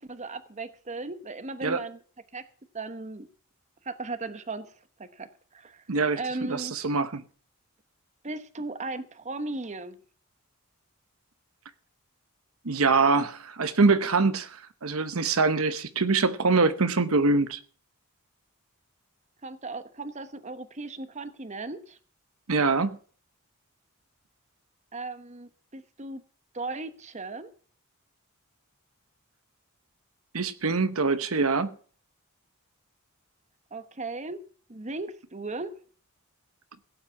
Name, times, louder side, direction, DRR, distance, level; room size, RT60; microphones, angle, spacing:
voice 1, 0.1-2.0 2.3-2.4 2.7-3.3 3.8-4.7 5.0-5.8 6.2-6.7 8.2-10.0 19.4-22.0 24.9-26.2 26.5-27.5 33.7-34.4 34.7-35.7, right 3 dB, 35° right, 1.0 m, -36 dB
voice 2, 5.9-6.2 6.5-7.2 12.6-14.6 14.8-17.6 22.5-23.0 30.3-31.7, right 4 dB, 75° right, 0.9 m, -24 dB
16.5 x 8.7 x 5.8 m
head